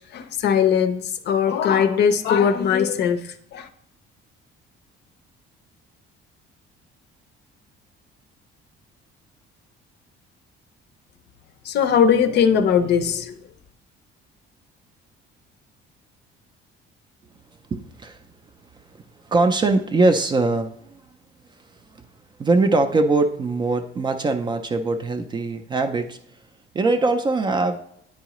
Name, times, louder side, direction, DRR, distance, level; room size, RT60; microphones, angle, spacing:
voice 1, 0.1-3.7 11.6-13.4, left 7 dB, 55° left, 10 dB, 0.5 m, -20 dB
voice 2, 17.7-18.2 19.2-21.0 22.4-26.2 26.7-27.8, right 3 dB, 20° right, 8 dB, 0.4 m, -21 dB
9.2 x 4.7 x 3.0 m, 0.70 s
cardioid pair, 160°, 21 cm